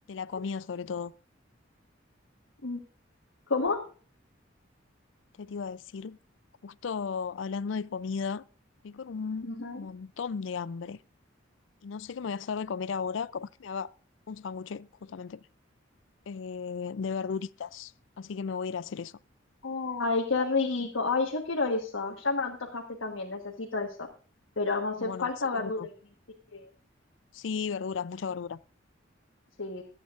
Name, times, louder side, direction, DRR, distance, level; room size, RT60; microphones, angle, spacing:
voice 1, 0.1-1.1 5.4-6.2 6.6-8.4 8.8-9.5 9.8-11.0 11.8-13.9 14.3-15.4 16.3-19.1 25.0-25.9 27.3-28.6, left 5 dB, 70° left, 0.4 m, -35 dB
voice 2, 3.5-3.8 9.4-9.8 19.6-24.1 24.6-25.9 26.5-26.7 29.6-29.8, left 3 dB, 85° left, 1.4 m, -30 dB
24.0 x 8.8 x 2.5 m
head